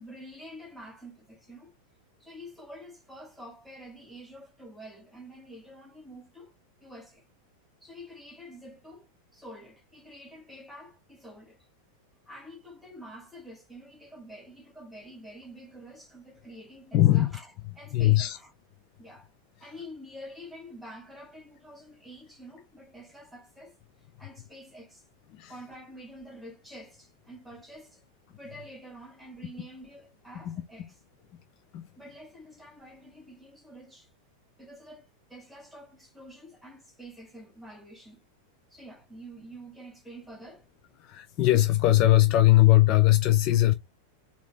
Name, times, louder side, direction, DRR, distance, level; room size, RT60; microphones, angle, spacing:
voice 1, 0.0-1.7 2.2-6.5 6.8-7.3 7.8-11.7 12.3-17.5 17.8-18.5 19.0-19.3 19.6-23.8 24.2-25.1 25.5-28.0 28.4-31.3 32.0-34.1 34.6-38.2 38.7-40.6, equal, ahead, 2.2 m, -47 dB
voice 2, 16.9-17.3 17.9-18.4 19.6-19.7 25.3-25.5 30.4-30.6 31.7-31.8 41.0-43.7, left 15 dB, 40° left, 0.5 m, -20 dB
4.6 x 2.8 x 3.6 m
figure-of-eight pair, 90°, 0 cm